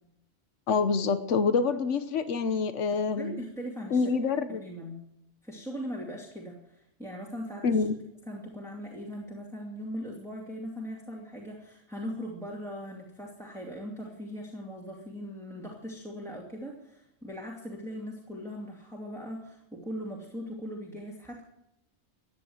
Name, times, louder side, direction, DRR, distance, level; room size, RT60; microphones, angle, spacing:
voice 1, 0.7-3.3 3.9-4.6 7.6-8.0, left 5 dB, 80° left, 10 dB, 1.3 m, -26 dB
voice 2, 3.2-4.2 4.5-5.0 5.4-7.8 8.3-21.5, equal, ahead, -3 dB, 2.5 m, -40 dB
15.5 x 10.5 x 8.0 m, 0.83 s
omnidirectional pair, 1.2 m